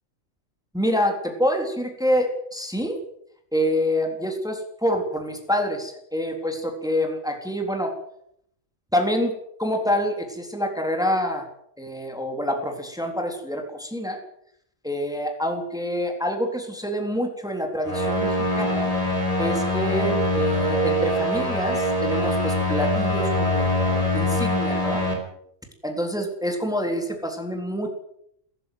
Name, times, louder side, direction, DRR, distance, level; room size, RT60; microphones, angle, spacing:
voice 1, 0.7-3.0 3.5-7.9 8.9-9.3 9.6-11.5 11.8-14.2 14.8-18.9 19.4-25.0 25.8-27.9, equal, 5° right, 3 dB, 3.5 m, -26 dB
sound 1, 17.8-25.1, left 1 dB, 25° left, 5.8 m, -23 dB
18.0 x 15.5 x 9.3 m, 0.71 s
omnidirectional pair, 1.3 m